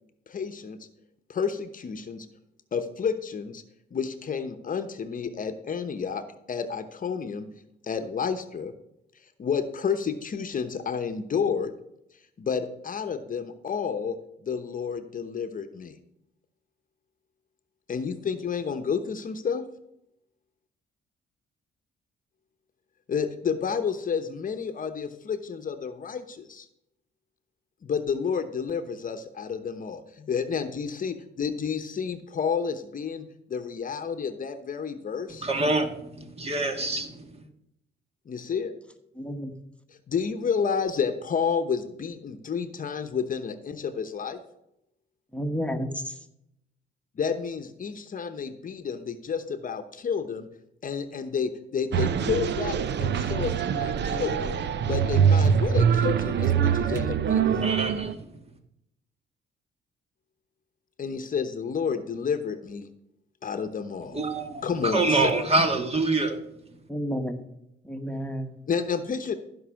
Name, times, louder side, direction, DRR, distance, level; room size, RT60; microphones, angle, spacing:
voice 1, 0.3-0.8 1.3-2.3 2.7-3.6 3.9-7.5 7.8-8.7 9.4-11.7 12.4-14.2 14.4-16.0 17.9-19.6 23.1-26.7 27.8-35.5 38.3-38.7 39.9-44.4 47.1-50.5 50.8-57.7 61.0-62.9 63.4-64.2 64.6-65.3 68.7-69.3, left 6 dB, 45° left, 1.0 m, -30 dB
voice 2, 35.4-37.5 57.6-58.4 64.1-66.4, right 2 dB, 30° right, 1.9 m, -26 dB
voice 3, 39.2-39.5 45.3-46.1 66.9-67.4 67.8-68.5, equal, 5° left, 1.4 m, -31 dB
sound 1, 51.9-58.1, right 7 dB, 60° right, 0.8 m, -24 dB
14.5 x 5.5 x 6.3 m
cardioid pair, 90°, 20 cm